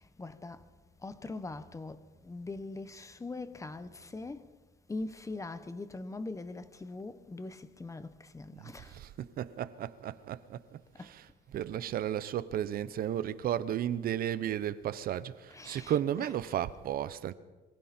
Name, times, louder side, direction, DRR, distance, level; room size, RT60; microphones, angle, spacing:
voice 1, 0.2-0.6 1.0-4.4 4.9-8.9 11.0-11.1 15.5-16.3, left 3 dB, 20° left, 1.2 m, -42 dB
voice 2, 8.5-10.6 11.0-17.3, right 10 dB, 60° right, 0.9 m, -34 dB
27.0 x 23.5 x 4.4 m
cardioid pair, 110°, 17 cm